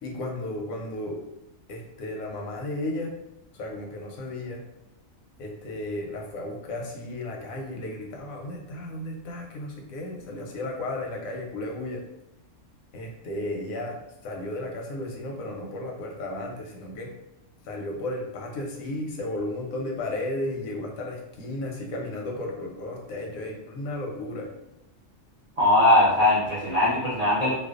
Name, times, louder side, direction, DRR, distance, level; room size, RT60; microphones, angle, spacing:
voice 1, 0.0-1.2 1.7-3.1 3.5-4.6 5.4-12.0 12.9-14.0 14.2-17.1 17.6-24.5, left 1 dB, 90° left, 1 dB, 1.0 m, -34 dB
voice 2, 25.6-27.5, left 1 dB, 60° right, -9 dB, 0.4 m, -20 dB
2.5 x 2.1 x 2.4 m, 0.86 s
omnidirectional pair, 1.4 m